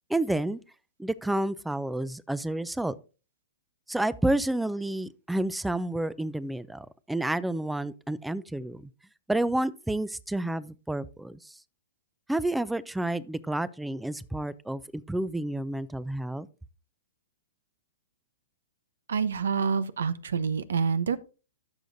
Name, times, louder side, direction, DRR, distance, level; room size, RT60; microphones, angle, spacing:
voice 1, 0.1-0.6 1.0-2.9 3.9-8.9 9.3-11.6 12.3-16.5, right 1 dB, 5° right, 0.4 m, -30 dB
voice 2, 19.1-21.2, right 6 dB, 85° right, 0.7 m, -27 dB
14.5 x 6.2 x 2.6 m
hypercardioid pair, 135°, 0 cm